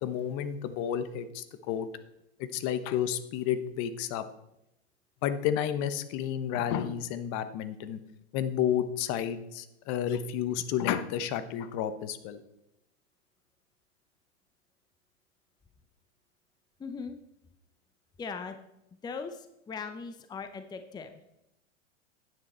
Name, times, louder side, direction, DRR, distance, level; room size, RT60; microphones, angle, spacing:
voice 1, 0.0-1.9 2.4-4.2 5.2-8.0 8.3-12.4, left 9 dB, 45° left, 12 dB, 1.0 m, -31 dB
voice 2, 16.8-17.2 18.2-18.6 19.0-21.1, left 5 dB, 10° left, 9 dB, 0.6 m, -39 dB
9.8 x 9.4 x 4.3 m, 0.87 s
hypercardioid pair, 105°, 35 cm